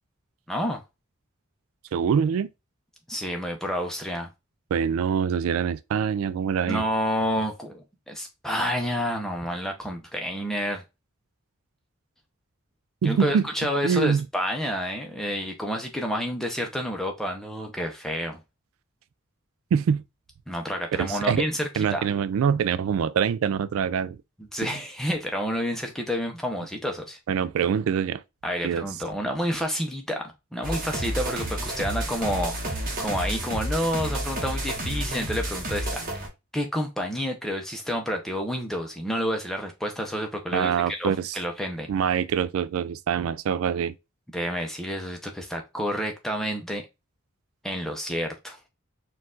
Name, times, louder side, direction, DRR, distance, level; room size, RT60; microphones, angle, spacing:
voice 1, 0.5-0.8 3.1-4.3 6.7-10.8 13.0-18.4 20.5-22.1 24.5-27.2 28.4-36.0 36.5-41.9 44.3-46.8 47.6-48.6, equal, ahead, 0.7 m, -29 dB
voice 2, 1.9-2.5 4.7-6.8 13.0-13.5 13.8-14.2 19.7-20.0 21.0-21.4 21.8-24.2 27.3-28.2 28.6-28.8 40.5-41.4 41.9-43.9, right 7 dB, 85° right, 0.3 m, -24 dB
sound 1, 30.6-36.3, right 1 dB, 40° right, 1.1 m, -30 dB
4.4 x 2.5 x 3.7 m
head